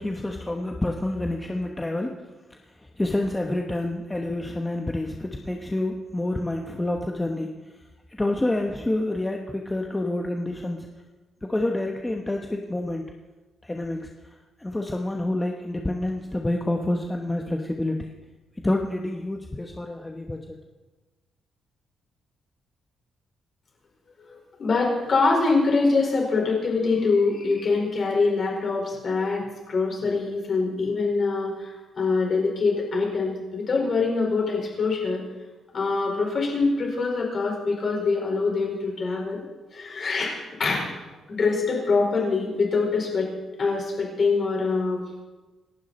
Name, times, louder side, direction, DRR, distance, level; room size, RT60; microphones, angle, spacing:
voice 1, 0.0-7.8 8.1-10.9 11.4-13.1 13.6-18.1 18.5-20.6, left 1 dB, 10° left, 2 dB, 1.1 m, -28 dB
voice 2, 24.6-31.7 32.0-35.2 35.7-39.4 39.7-40.9 41.3-43.3 43.6-45.0, left 4 dB, 40° left, 0 dB, 5.0 m, -24 dB
28.0 x 11.5 x 4.3 m, 1.2 s
cardioid pair, 150°, 0 cm